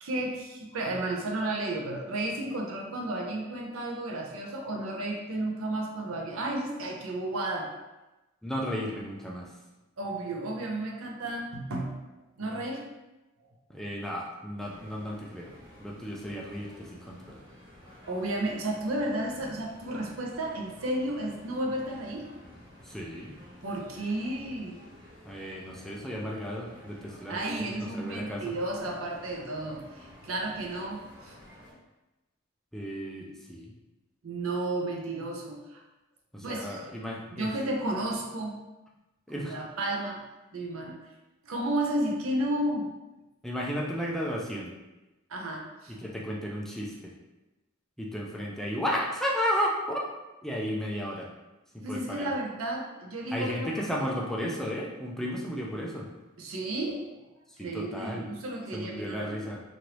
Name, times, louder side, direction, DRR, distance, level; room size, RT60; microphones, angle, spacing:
voice 1, 0.0-7.7 10.0-12.0 12.4-12.8 18.1-22.3 23.6-24.8 27.3-31.3 34.2-35.8 36.4-36.8 37.3-38.6 39.4-40.2 40.5-41.0 41.4-42.9 45.3-45.9 51.8-53.7 56.4-57.1 57.6-59.3, right 1 dB, 80° right, -1 dB, 0.6 m, -32 dB
voice 2, 8.4-9.5 13.7-15.5 15.8-17.4 22.8-23.3 25.3-28.4 32.7-33.7 36.3-37.5 39.3-39.5 43.4-44.7 45.9-47.1 48.0-50.1 50.4-51.3 51.7-52.3 53.3-56.1 57.6-58.3 58.7-59.6, equal, ahead, -3 dB, 0.4 m, -33 dB
sound 1, 14.6-31.7, left 1 dB, 25° right, 1.1 m, -52 dB
3.1 x 2.6 x 2.9 m, 1.0 s
head